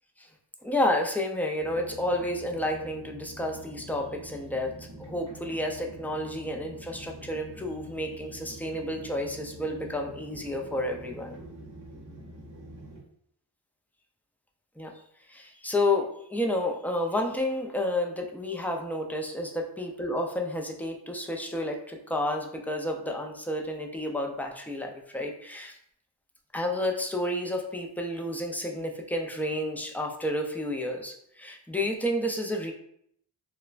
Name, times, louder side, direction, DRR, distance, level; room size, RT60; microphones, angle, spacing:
voice 1, 0.6-11.4 14.8-14.9 15.3-25.8 26.5-32.7, left 1 dB, 5° left, 1 dB, 0.3 m, -30 dB
sound 1, 1.6-13.0, right 1 dB, 40° right, 0.8 m, -46 dB
3.2 x 2.1 x 2.4 m, 0.68 s
wide cardioid pair, 50°, 46 cm